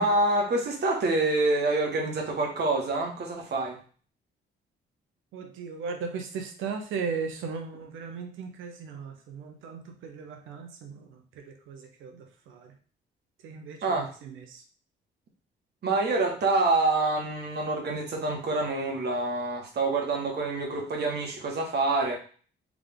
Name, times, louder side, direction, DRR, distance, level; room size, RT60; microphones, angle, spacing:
voice 1, 0.0-3.8 13.8-14.1 15.8-22.2, right 2 dB, 55° right, 1 dB, 1.5 m, -26 dB
voice 2, 5.3-12.7 13.4-14.6, right 5 dB, 90° right, 4 dB, 1.0 m, -37 dB
3.7 x 3.6 x 3.6 m, 0.42 s
cardioid pair, 90°, 20 cm